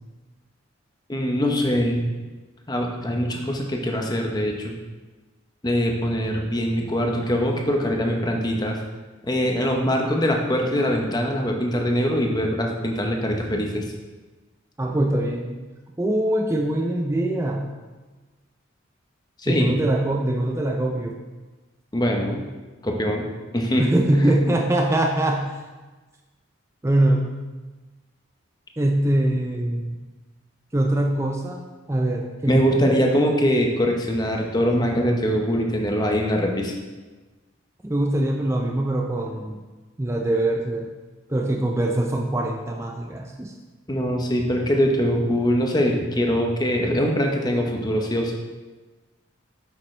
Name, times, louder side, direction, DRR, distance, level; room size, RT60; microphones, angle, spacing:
voice 1, 1.1-2.1 2.7-4.7 5.6-8.8 9.3-13.8 19.4-19.7 21.9-22.4 22.8-23.2 23.5-23.8 24.1-24.3 32.5-36.7 43.9-48.3, equal, 20° left, 1 dB, 0.9 m, -23 dB
voice 2, 14.8-15.6 16.0-17.7 19.5-21.2 23.8-25.5 26.8-27.3 28.8-30.0 30.7-31.6 31.9-33.3 37.8-39.6 40.0-40.9 41.3-43.5, right 1 dB, 15° right, 2 dB, 0.4 m, -23 dB
8.7 x 7.2 x 3.2 m, 1.3 s
head